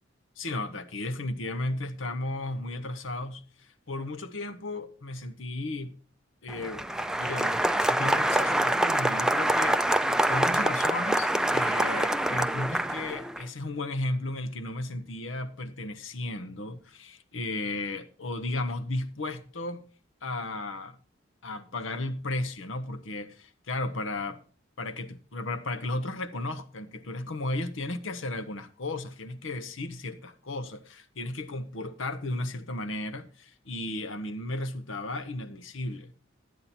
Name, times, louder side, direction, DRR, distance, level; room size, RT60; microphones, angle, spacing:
voice 1, 0.4-5.9 6.4-6.9 7.2-19.8 20.2-21.0 21.4-24.4 24.8-36.1, left 2 dB, 85° left, 1.0 m, -34 dB
Applause, 6.5-13.4, right 1 dB, 5° right, 0.4 m, -26 dB
12.5 x 8.6 x 4.3 m
head